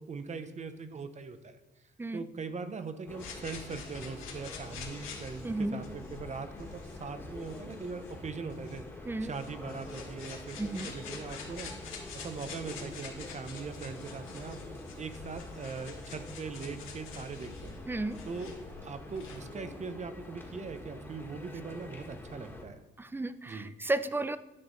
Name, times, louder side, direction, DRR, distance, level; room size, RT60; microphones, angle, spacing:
voice 1, 0.0-1.6 2.1-8.9 9.2-11.7 12.1-14.6 15.0-17.8 18.2-22.8 23.5-23.7, right 4 dB, 35° right, 10 dB, 0.8 m, -41 dB
sound 1, 3.1-22.6, left 1 dB, 10° left, 1.7 m, -46 dB
sound 2, 3.2-19.4, left 6 dB, 80° left, 2.0 m, -48 dB
voice 2, 5.4-5.8 9.1-9.3 10.6-10.9 17.9-18.2 23.0-24.4, right 2 dB, 10° right, 14 dB, 0.4 m, -33 dB
11.0 x 6.1 x 4.0 m, 1.0 s
cardioid pair, 90°, 20 cm